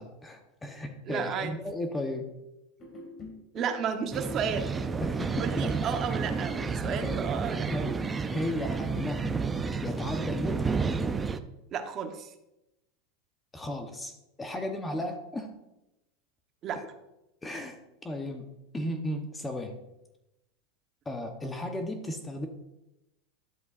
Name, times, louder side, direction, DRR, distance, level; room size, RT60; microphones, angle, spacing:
voice 1, 0.0-2.3 5.0-5.7 6.7-7.1 7.7-7.9 8.3-9.3 9.8-10.7 13.5-14.1 14.4-15.5 17.4-17.8 18.0-18.4 18.7-19.8 21.1-22.5, left 1 dB, 10° left, 4 dB, 1.0 m, -35 dB
voice 2, 1.1-1.5 3.5-4.7 5.4-7.7 11.7-12.3 14.9-15.0 16.6-16.8, right 7 dB, 35° right, 5 dB, 1.1 m, -33 dB
sound 1, 2.8-11.0, left 2 dB, 30° left, 2.2 m, -45 dB
sound 2, 4.1-11.4, right 5 dB, 15° right, 0.4 m, -31 dB
11.0 x 7.6 x 2.5 m, 0.90 s
supercardioid pair, 140°, 0 cm